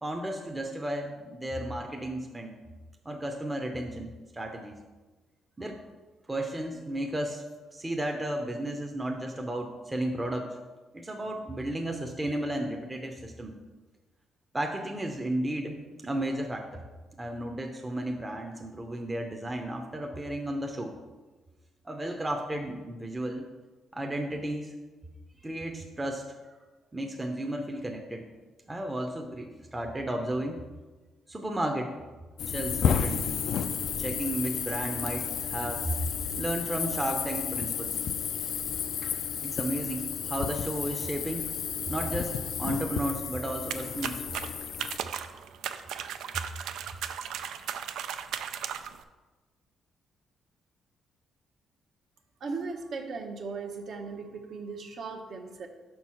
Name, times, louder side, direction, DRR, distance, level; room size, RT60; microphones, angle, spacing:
voice 1, 0.0-2.6 3.0-4.8 5.6-5.8 6.3-7.4 7.7-10.6 10.9-13.5 14.5-16.8 17.2-20.9 21.8-23.5 23.9-24.7 25.4-26.5 26.9-28.2 28.7-30.6 31.3-31.9 32.5-33.3 34.0-35.9 36.4-38.0 39.4-41.5 41.9-44.2, right 1 dB, 15° right, 2 dB, 0.7 m, -33 dB
sound 1, 32.4-45.0, left 7 dB, 65° left, 0.4 m, -32 dB
sound 2, 43.7-49.0, right 9 dB, 85° right, 0.4 m, -36 dB
voice 2, 52.4-55.7, right 4 dB, 60° right, 3 dB, 1.0 m, -37 dB
5.4 x 4.6 x 5.7 m, 1.3 s
cardioid pair, 90°, 0 cm